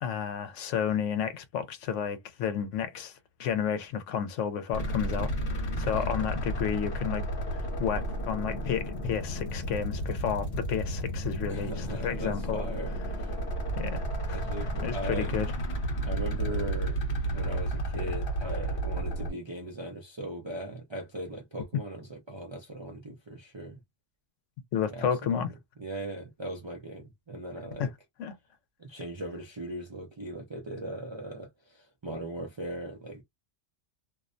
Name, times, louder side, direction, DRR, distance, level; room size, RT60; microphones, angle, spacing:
voice 1, 0.0-3.1 3.4-12.7 13.7-14.4 14.8-15.5 24.7-25.5 27.8-27.9 28.2-28.3, left 8 dB, 80° left, 0.9 m, -31 dB
sound 1, 4.7-19.3, right 1 dB, 50° left, 1.0 m, -32 dB
voice 2, 5.9-6.4 11.5-13.3 14.3-15.3 16.0-17.0 17.3-23.8 24.9-25.4 25.8-27.9 28.8-33.2, right 1 dB, 45° right, 0.3 m, -39 dB
2.5 x 2.1 x 2.4 m
omnidirectional pair, 1.3 m